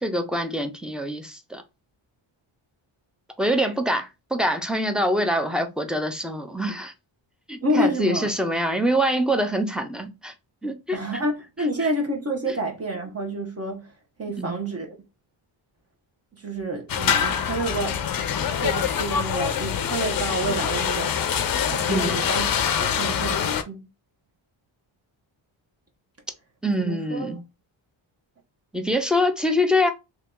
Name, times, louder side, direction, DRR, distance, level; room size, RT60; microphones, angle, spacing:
voice 1, 0.0-1.6 3.4-6.9 7.5-10.3 10.6-11.0 14.4-14.6 21.9-22.2 26.6-27.4 28.7-29.9, equal, ahead, 0.5 m, -24 dB
voice 2, 7.6-8.3 10.9-13.9 14.2-15.0 16.3-18.0 18.6-21.2 21.7-22.5 22.8-23.9 26.8-27.4, right 1 dB, 30° right, 0.8 m, -28 dB
sound 1, 16.9-23.6, left 8 dB, 45° left, 0.5 m, -25 dB
2.9 x 2.8 x 3.6 m
cardioid pair, 110°, 49 cm